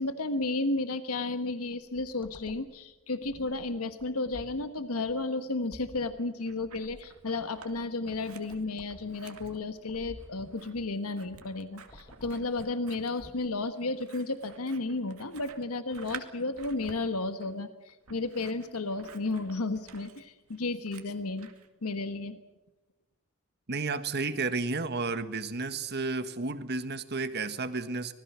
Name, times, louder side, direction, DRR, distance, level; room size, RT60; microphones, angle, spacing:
voice 1, 0.0-21.5 21.8-22.4, left 2 dB, 85° left, 10 dB, 1.3 m, -33 dB
sound 1, 1.7-13.6, left 1 dB, 25° left, 1.5 m, -52 dB
Scissors, 6.2-7.7 8.0-21.7, right 6 dB, 75° right, 2.3 m, -51 dB
voice 2, 23.7-28.1, right 3 dB, 50° right, 10 dB, 1.6 m, -32 dB
26.0 x 20.0 x 6.2 m, 1.1 s
head